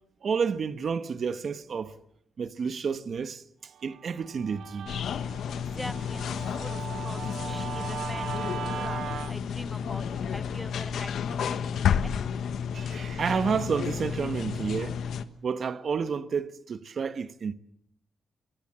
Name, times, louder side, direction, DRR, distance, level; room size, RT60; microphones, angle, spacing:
voice 1, 0.2-2.0 2.4-3.4 3.8-4.9 6.7-6.8 12.7-15.0 15.4-17.5, right 6 dB, 45° right, 1.2 m, -30 dB
Guitar, 3.8-9.3, right 9 dB, 70° right, 0.8 m, -39 dB
sound 1, 4.9-15.2, left 8 dB, 75° left, 1.3 m, -31 dB
voice 2, 5.6-12.2, equal, ahead, 1.0 m, -43 dB
24.0 x 20.0 x 7.6 m
wide cardioid pair, 140°, 0 cm